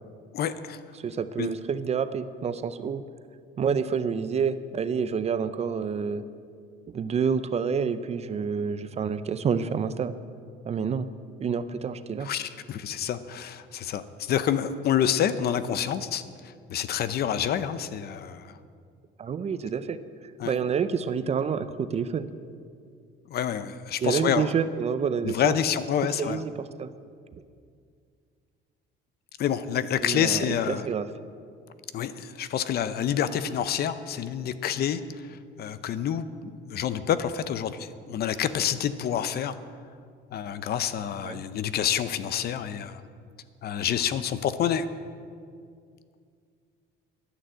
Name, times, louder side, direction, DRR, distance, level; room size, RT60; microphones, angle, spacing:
voice 1, 0.3-0.8 1.4-1.5 12.2-16.2 16.7-18.5 20.4-20.5 23.3-24.5 25.2-26.4 29.4-30.9 31.9-39.6 40.3-43.0 43.6-44.9, left 9 dB, 55° left, 13 dB, 0.7 m, -28 dB
voice 2, 1.0-3.0 3.6-6.2 6.9-10.1 10.7-11.1 11.4-12.3 19.2-20.0 20.4-22.3 24.0-25.6 26.2-26.9 30.0-31.1 41.2-41.4, right 6 dB, 35° right, 13 dB, 0.6 m, -28 dB
11.5 x 9.9 x 7.9 m, 2.2 s
cardioid pair, 130°, 20 cm